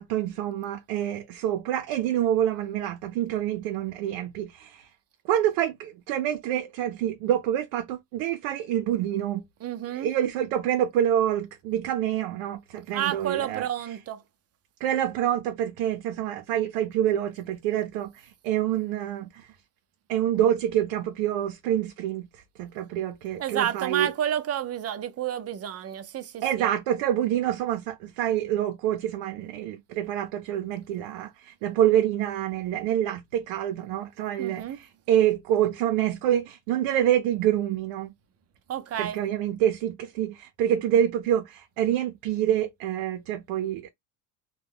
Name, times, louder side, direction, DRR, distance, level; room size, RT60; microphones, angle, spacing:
voice 1, 0.0-4.9 5.2-9.4 9.9-13.7 14.8-19.5 20.1-22.3 22.6-24.1 26.4-38.1 39.0-43.9, right 11 dB, 85° right, 0.6 m, -27 dB
voice 2, 9.6-10.1 12.9-14.2 23.4-26.7 34.4-34.8 38.7-39.2, right 10 dB, 35° right, 0.5 m, -30 dB
2.3 x 2.1 x 3.4 m
supercardioid pair, 100°, 44 cm